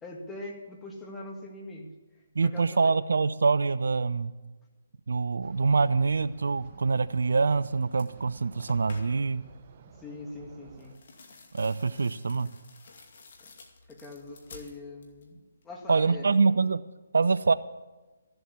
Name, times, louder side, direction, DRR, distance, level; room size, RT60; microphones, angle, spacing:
voice 1, 0.0-1.9 2.4-2.9 10.0-11.0 13.4-13.5 13.9-15.4 15.6-16.3, left 2 dB, 10° left, -1 dB, 2.1 m, -42 dB
voice 2, 2.4-4.3 5.1-9.4 11.5-12.5 15.9-16.8 17.1-17.5, right 4 dB, 70° right, 15 dB, 0.5 m, -25 dB
sound 1, 5.4-11.0, right 5 dB, 40° right, 0.9 m, -52 dB
sound 2, 7.5-7.6 7.9-9.4 10.7-15.3 15.6-16.2, left 3 dB, 55° left, 2.3 m, -51 dB
13.5 x 7.9 x 8.5 m, 1.2 s
figure-of-eight pair, 145°, 0 cm